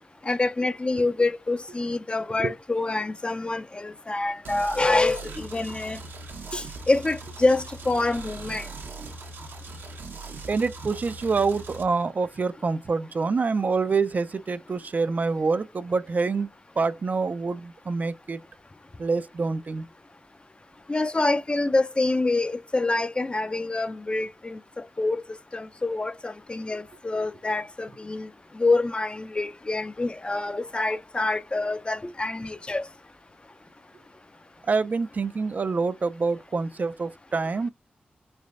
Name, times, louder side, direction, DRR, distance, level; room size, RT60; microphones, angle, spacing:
voice 1, 0.2-6.0 6.5-8.7 20.9-25.2 25.5-32.8, left 2 dB, 30° left, 0.4 m, -26 dB
sound 1, 4.4-11.8, right 3 dB, 80° right, 0.8 m, -40 dB
voice 2, 10.5-16.5 16.8-18.4 19.0-19.9 34.7-37.7, right 4 dB, 50° right, 0.4 m, -26 dB
3.3 x 3.2 x 2.4 m
cardioid pair, 60°, 4 cm